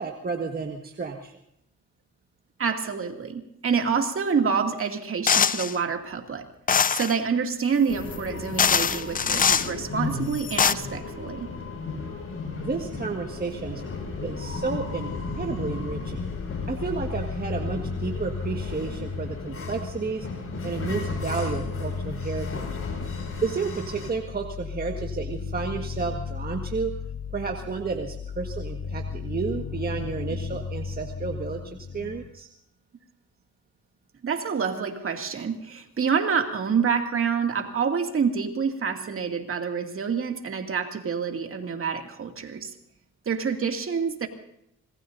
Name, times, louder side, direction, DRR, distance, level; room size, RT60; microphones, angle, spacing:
voice 1, 0.0-1.3 12.6-13.8 14.2-16.2 16.7-20.3 20.6-22.7 23.4-26.9 27.3-32.5, right 4 dB, 30° right, 2 dB, 1.7 m, -31 dB
voice 2, 2.6-6.5 6.9-11.5 34.2-42.7 43.3-44.3, right 6 dB, 45° right, 4 dB, 2.5 m, -27 dB
sound 1, 5.3-5.7 6.7-7.1 8.1-8.2 8.6-9.7 10.3-10.7, left 7 dB, 30° left, 0.5 m, -22 dB
sound 2, 7.9-24.1, left 4 dB, 50° left, 5.8 m, -35 dB
sound 3, 16.1-32.3, left 5 dB, 65° left, 1.7 m, -35 dB
26.5 x 20.5 x 2.7 m, 0.75 s
cardioid pair, 90°, 30 cm